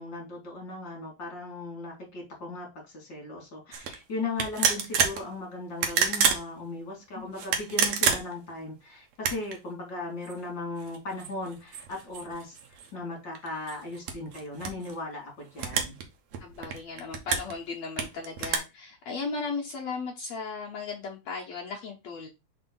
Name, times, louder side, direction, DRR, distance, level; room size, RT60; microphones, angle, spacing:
voice 1, 0.0-16.0, left 2 dB, 35° left, -1 dB, 2.5 m, -37 dB
sound 1, 3.7-4.0 4.4-5.2 5.7-6.4 7.4-8.5 9.1-9.6 10.3-10.4 10.8-12.9 13.4-14.9 15.6-16.0 16.3-17.5 18.0-18.6, right 6 dB, 65° right, 1.8 m, -28 dB
voice 2, 16.4-22.3, left 4 dB, 80° left, 0 dB, 1.5 m, -36 dB
5.3 x 4.3 x 5.4 m, 0.26 s
omnidirectional pair, 4.4 m